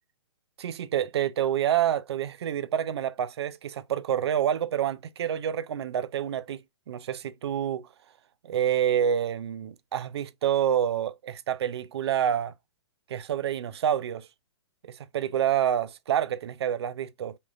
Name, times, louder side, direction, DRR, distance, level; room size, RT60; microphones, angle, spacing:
voice 1, 0.6-6.6 6.9-7.9 8.4-12.5 13.1-14.3 14.8-17.4, right 10 dB, 60° right, 0.4 m, -28 dB
3.6 x 2.4 x 2.4 m
figure-of-eight pair, 125°, 15 cm